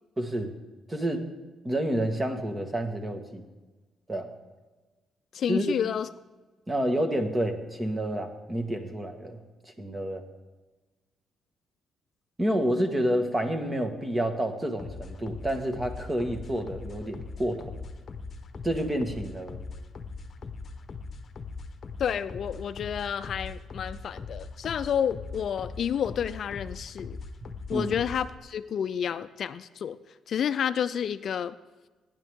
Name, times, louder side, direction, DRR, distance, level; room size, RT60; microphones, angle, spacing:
voice 1, 0.2-0.6 0.9-1.2 1.6-3.4 4.1-4.3 5.5-5.7 6.7-10.2 12.4-17.7 18.6-19.6 27.7-27.9, right 1 dB, 20° right, 6 dB, 1.6 m, -29 dB
voice 2, 5.3-6.1 22.0-27.2 27.7-30.0 30.3-31.5, left 8 dB, 60° left, 13 dB, 0.4 m, -30 dB
sound 1, 14.8-28.4, left 4 dB, 45° left, 0.9 m, -41 dB
17.5 x 10.5 x 3.7 m, 1.2 s
cardioid pair, 90°, 0 cm